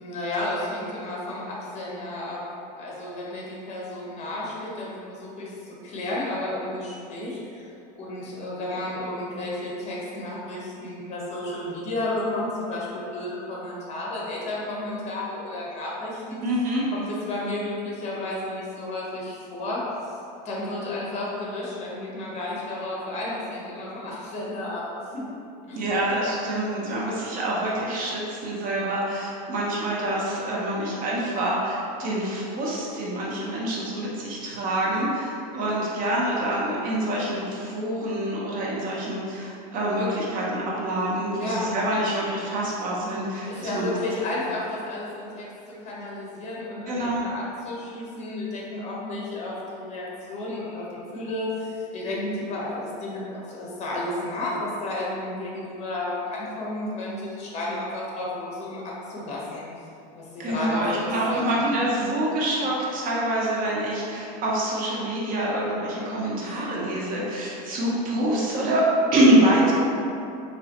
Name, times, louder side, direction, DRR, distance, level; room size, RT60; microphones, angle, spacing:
voice 1, 0.0-2.4 2.8-7.7 8.0-16.4 16.9-20.1 20.4-25.2 25.7-25.8 41.4-41.7 43.5-45.4 45.8-59.6 60.1-61.5, left 2 dB, 35° left, -5 dB, 1.0 m, -32 dB
voice 2, 16.4-16.8 25.7-44.0 46.9-47.3 60.4-68.8 69.1-69.7, right 1 dB, 40° right, -5 dB, 0.8 m, -26 dB
4.0 x 3.0 x 2.9 m, 2.6 s
supercardioid pair, 130°, 20 cm